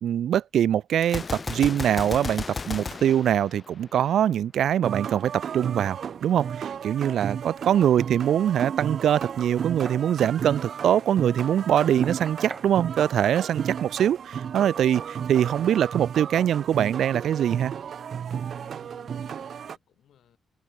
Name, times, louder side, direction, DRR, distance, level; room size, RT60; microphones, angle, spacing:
voice 1, 0.0-17.7, right 10 dB, 75° right, 0.5 m, -23 dB
Gunshot gunfire, 1.0-4.1, left 4 dB, 25° left, 0.6 m, -34 dB
sound 1, 4.8-19.8, right 7 dB, 50° right, 1.0 m, -34 dB
Knock, 8.9-10.1 11.6-12.7 14.8-14.9 15.5-15.7 16.4-16.6, right 4 dB, 25° right, 2.9 m, -43 dB
voice 2, 18.5-20.4, left 11 dB, 85° left, 7.2 m, -59 dB
wide cardioid pair, 170°, 0 cm